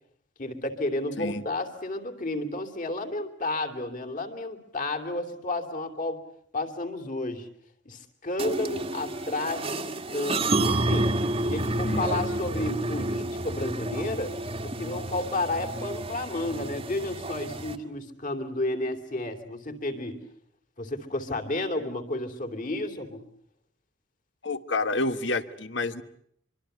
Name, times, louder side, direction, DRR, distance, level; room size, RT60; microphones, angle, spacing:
voice 1, 0.4-6.2 6.5-7.5 7.8-11.1 11.4-14.3 14.6-20.2 20.8-23.2, left 2 dB, 45° left, 6 dB, 3.0 m, -32 dB
sound 1, 8.4-17.8, right 2 dB, 30° right, 1.6 m, -30 dB
voice 2, 11.8-12.3 24.4-26.0, left 3 dB, 70° left, 12 dB, 1.4 m, -29 dB
24.5 x 24.5 x 8.0 m, 0.67 s
head